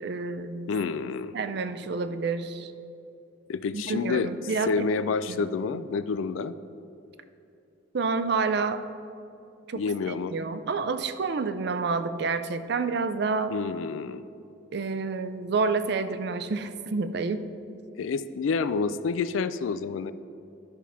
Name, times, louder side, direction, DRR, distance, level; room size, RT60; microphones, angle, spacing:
voice 1, 0.0-0.7 1.3-2.7 3.7-4.9 5.3-5.5 7.9-8.8 9.7-13.5 14.7-17.5, right 4 dB, 55° right, 10 dB, 0.4 m, -29 dB
voice 2, 0.7-1.3 3.5-4.3 4.7-6.5 9.7-10.3 13.5-14.2 18.0-20.1, left 5 dB, 80° left, 14 dB, 0.3 m, -28 dB
12.0 x 5.6 x 3.6 m, 2.7 s
head